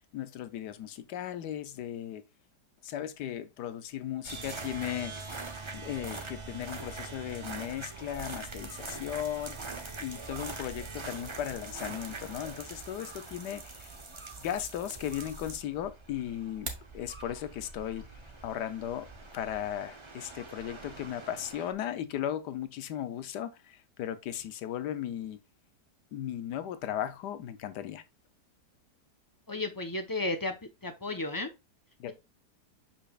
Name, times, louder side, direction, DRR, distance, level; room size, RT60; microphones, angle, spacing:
voice 1, 0.1-2.2 2.8-5.1 5.7-9.6 10.0-13.9 14.4-18.0 18.4-19.1 19.3-25.4 26.1-28.0 32.0-32.1, left 11 dB, 85° left, 1.3 m, -36 dB
sound 1, 4.2-21.7, right 3 dB, 25° right, 0.7 m, -43 dB
sound 2, 16.4-17.0, right 3 dB, 40° right, 1.5 m, -40 dB
voice 2, 29.5-30.5 30.8-31.5, left 2 dB, 20° left, 0.5 m, -33 dB
7.0 x 5.7 x 2.4 m
omnidirectional pair, 1.7 m